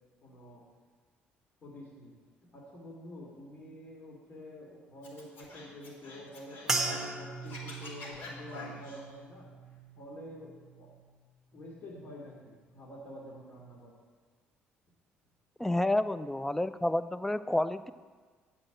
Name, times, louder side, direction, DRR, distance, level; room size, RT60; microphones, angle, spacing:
voice 1, 0.2-0.6 1.6-2.1 2.4-9.5 9.9-10.9 11.5-14.0, left 1 dB, 45° left, -4 dB, 2.0 m, -48 dB
Scratching (performance technique), 5.0-7.1 7.4-9.0, left 3 dB, 75° left, 3.5 m, -45 dB
sound 1, 6.7-11.2 11.6-12.2 12.8-13.0, right 3 dB, 10° right, 1.0 m, -39 dB
voice 2, 15.6-17.9, left 1 dB, 5° left, 13 dB, 0.3 m, -29 dB
8.9 x 5.4 x 7.7 m, 1.5 s
cardioid pair, 110°, 4 cm